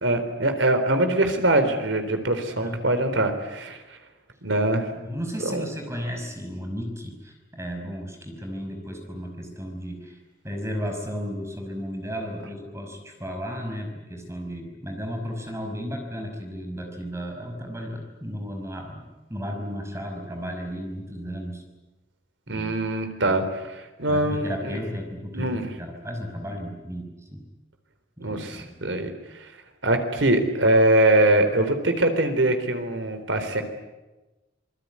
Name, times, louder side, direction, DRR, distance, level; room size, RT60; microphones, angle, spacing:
voice 1, 0.0-4.0 4.4-4.9 5.4-5.6 22.5-24.8 25.3-25.7 28.2-29.5 29.8-33.6, right 1 dB, 80° right, 8 dB, 3.9 m, -23 dB
voice 2, 2.5-2.8 5.0-10.2 10.4-19.0 19.3-21.6 22.5-22.7 23.2-23.4 24.1-27.4 28.2-28.7, equal, 15° right, 3 dB, 5.4 m, -34 dB
27.0 x 20.5 x 9.7 m, 1.1 s
head